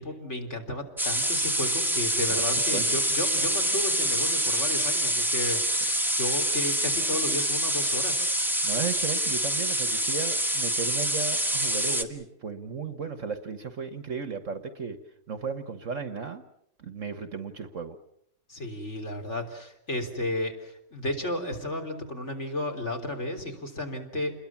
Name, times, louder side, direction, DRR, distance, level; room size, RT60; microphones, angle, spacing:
voice 1, 0.0-8.3 18.5-24.3, left 1 dB, 40° left, 3 dB, 3.9 m, -33 dB
sound 1, 1.0-12.0, right 1 dB, ahead, 1.3 m, -26 dB
voice 2, 2.3-3.0 8.6-15.0 15.3-16.4 16.8-17.9, right 5 dB, 50° right, 9 dB, 1.5 m, -35 dB
29.0 x 21.5 x 7.3 m, 0.74 s
omnidirectional pair, 1.8 m